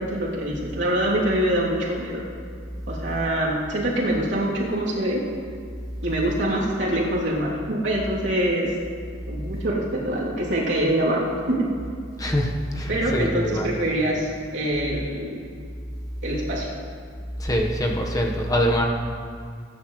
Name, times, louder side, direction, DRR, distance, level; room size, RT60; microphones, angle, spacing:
voice 1, 0.0-2.2 2.9-5.3 6.0-8.7 9.3-11.7 12.9-15.4 16.2-16.7, right 1 dB, 70° right, -6 dB, 3.1 m, -24 dB
voice 2, 12.2-13.7 17.4-18.8, equal, 20° left, 0 dB, 1.3 m, -24 dB
20.5 x 10.0 x 3.3 m, 2.2 s
head